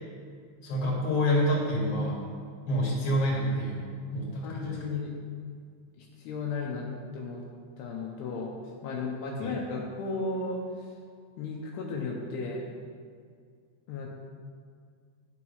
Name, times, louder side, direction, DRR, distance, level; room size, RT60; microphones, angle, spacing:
voice 1, 0.6-2.2 2.7-3.8 4.1-4.9 9.4-9.5, equal, 40° left, -5 dB, 2.7 m, -27 dB
voice 2, 4.4-5.2 6.0-6.9 7.1-7.4 7.8-8.5 8.8-10.9 11.4-12.7 13.9-14.1, left 3 dB, 80° left, -2 dB, 2.8 m, -34 dB
11.0 x 4.7 x 5.6 m, 2.1 s
omnidirectional pair, 4.9 m